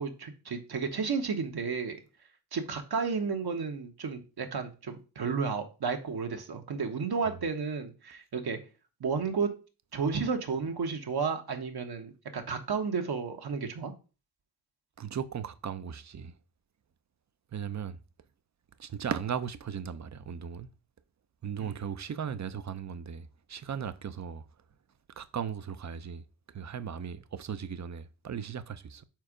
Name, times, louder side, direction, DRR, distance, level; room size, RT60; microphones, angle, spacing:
voice 1, 0.0-2.0 2.5-8.6 9.0-9.5 9.9-13.9 21.6-21.8, right 5 dB, 60° right, 1.3 m, -32 dB
voice 2, 15.0-16.3 17.5-18.0 18.8-20.7 21.4-24.4 25.2-26.2 26.5-29.0, right 7 dB, 40° right, 0.7 m, -37 dB
4.6 x 4.3 x 5.0 m
supercardioid pair, 45°, 42 cm